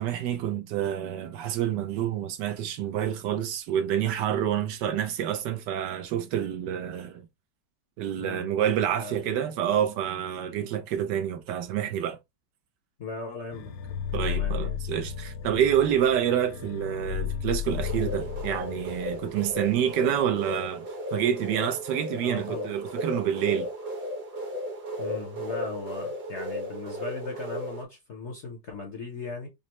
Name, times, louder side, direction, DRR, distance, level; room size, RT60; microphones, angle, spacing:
voice 1, 0.0-7.2 8.0-12.2 14.1-20.9 21.1-23.7, right 10 dB, 75° right, 1.2 m, -28 dB
voice 2, 8.2-8.5 8.9-9.4 13.0-14.0 14.3-14.8 22.2-22.7 25.0-29.5, left 3 dB, 55° left, 0.8 m, -38 dB
sound 1, 13.5-20.2, left 9 dB, 85° left, 1.4 m, -34 dB
sound 2, 17.6-27.8, equal, 55° right, 1.4 m, -35 dB
5.2 x 2.0 x 2.9 m
omnidirectional pair, 2.0 m